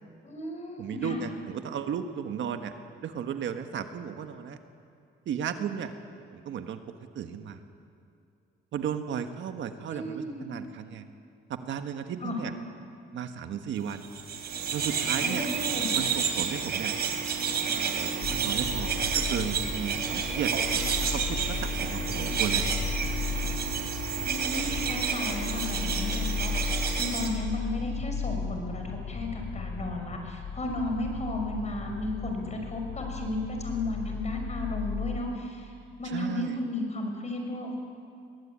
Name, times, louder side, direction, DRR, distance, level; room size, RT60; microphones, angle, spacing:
voice 1, 0.2-1.3 9.9-10.5 12.2-12.4 15.2-16.0 24.2-35.7 36.0-37.8, left 1 dB, 35° left, 3 dB, 5.9 m, -34 dB
voice 2, 0.8-2.7 3.0-4.6 5.3-5.9 6.3-6.8 7.1-7.6 8.7-11.1 11.5-12.5 13.1-14.1 14.7-15.5 15.9-16.9 17.6-20.5 21.0-22.6 36.1-36.5, right 8 dB, 70° right, 7 dB, 1.5 m, -34 dB
sound 1, 14.0-27.3, right 6 dB, 55° right, 3.4 m, -30 dB
sound 2, 18.2-35.2, left 5 dB, 85° left, 1.9 m, -35 dB
22.5 x 18.0 x 8.8 m, 2.5 s
cardioid pair, 90°, 20 cm